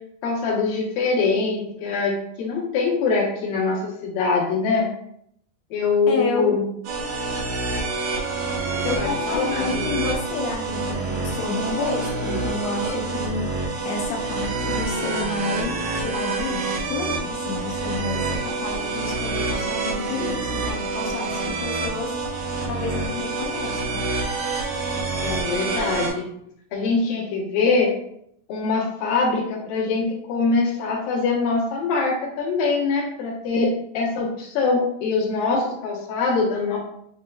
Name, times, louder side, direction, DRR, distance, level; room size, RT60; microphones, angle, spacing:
voice 1, 0.2-4.9 5.7-6.6 9.0-9.9 25.2-26.3 26.7-27.9 28.5-36.8, left 4 dB, 70° left, -4 dB, 2.6 m, -23 dB
voice 2, 6.1-6.6 8.8-22.2 22.7-24.0, left 3 dB, 90° left, 0 dB, 2.8 m, -30 dB
sound 1, 6.8-26.1, right 3 dB, 75° right, 2.8 m, -27 dB
7.5 x 2.9 x 2.3 m, 0.73 s
omnidirectional pair, 4.6 m